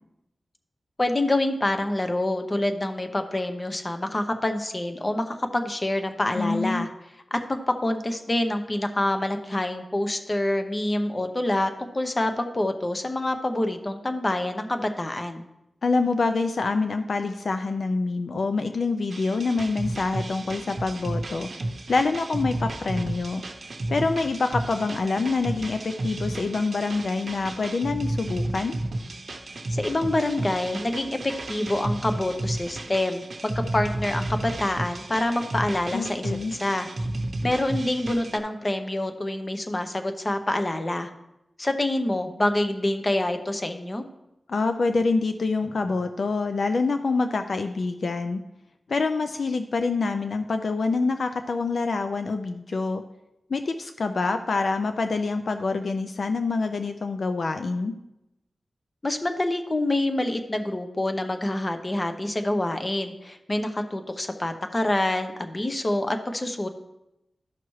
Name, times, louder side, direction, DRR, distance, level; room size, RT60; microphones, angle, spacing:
voice 1, 1.0-6.9 7.3-15.4 29.7-36.9 37.4-41.1 41.6-44.0 59.0-66.7, left 1 dB, 30° left, 6 dB, 0.8 m, -26 dB
voice 2, 6.4-6.9 15.8-21.5 21.9-23.4 23.9-28.8 35.9-36.5 44.5-48.4 48.9-53.0 53.5-57.9, left 3 dB, 70° left, 7 dB, 0.4 m, -26 dB
sound 1, 19.1-38.4, right 1 dB, 60° right, 0.7 m, -32 dB
12.5 x 5.8 x 3.1 m, 0.90 s
wide cardioid pair, 85°, 0 cm